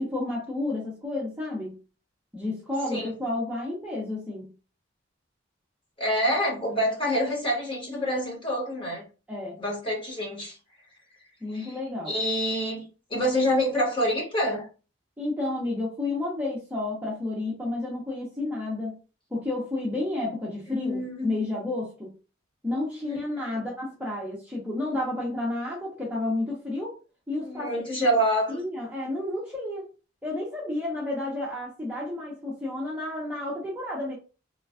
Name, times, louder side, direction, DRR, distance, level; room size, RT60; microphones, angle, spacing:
voice 1, 0.0-1.8 2.3-4.5 9.3-9.6 11.4-12.1 15.2-19.0 19.3-22.1 22.6-26.9 27.3-27.7 28.5-29.9 30.2-34.1, left 2 dB, 5° right, -5 dB, 0.6 m, -31 dB
voice 2, 6.0-9.1 9.6-10.6 11.5-11.8 12.1-12.8 13.1-14.6 20.7-21.5 23.1-23.2 23.5-23.6 27.4-28.6, equal, 25° left, -3 dB, 1.1 m, -27 dB
3.1 x 2.2 x 2.4 m, 0.33 s
head